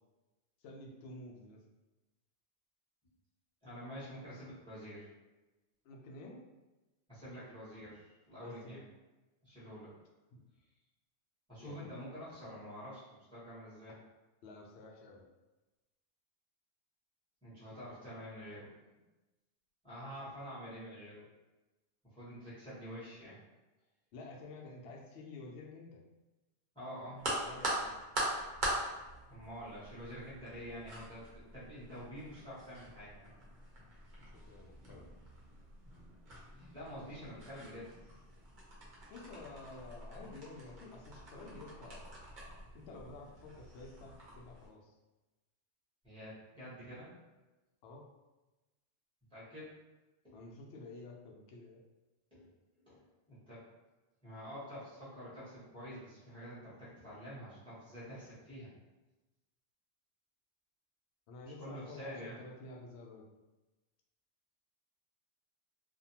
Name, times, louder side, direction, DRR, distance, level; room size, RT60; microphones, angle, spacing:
voice 1, 0.6-1.6 5.8-6.4 8.4-8.8 10.3-10.4 11.6-11.9 14.4-15.2 24.1-26.0 27.4-28.0 29.6-29.7 34.3-35.0 39.1-42.2 42.7-44.9 47.8-48.1 50.3-51.8 61.3-63.3, left 2 dB, 70° left, 0 dB, 0.8 m, -50 dB
voice 2, 3.6-5.0 7.1-8.8 9.4-9.9 11.5-13.9 17.4-18.7 19.8-21.3 22.0-23.4 26.7-27.2 29.3-33.3 36.6-37.9 46.0-47.1 49.3-49.7 50.2-50.4 52.3-52.5 52.8-53.6 54.2-58.7 61.6-62.4, equal, 5° left, -9 dB, 0.9 m, -47 dB
sound 1, 27.2-44.7, right 1 dB, 50° right, 0.8 m, -43 dB
2.6 x 2.1 x 2.8 m, 1.1 s
omnidirectional pair, 1.2 m